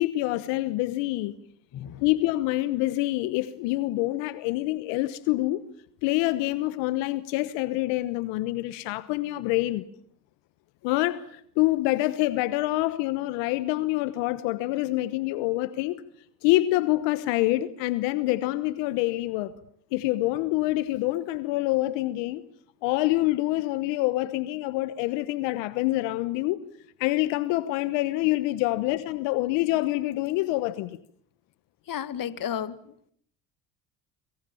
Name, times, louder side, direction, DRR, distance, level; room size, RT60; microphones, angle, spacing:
voice 1, 0.0-1.3 2.0-5.6 6.0-9.9 10.8-16.0 16.4-19.5 19.9-22.4 22.8-26.6 27.0-31.0, left 18 dB, 80° left, 15 dB, 1.2 m, -26 dB
voice 2, 31.9-32.8, left 9 dB, 50° left, 15 dB, 2.0 m, -32 dB
26.5 x 25.5 x 7.1 m, 0.63 s
supercardioid pair, 75°, 43 cm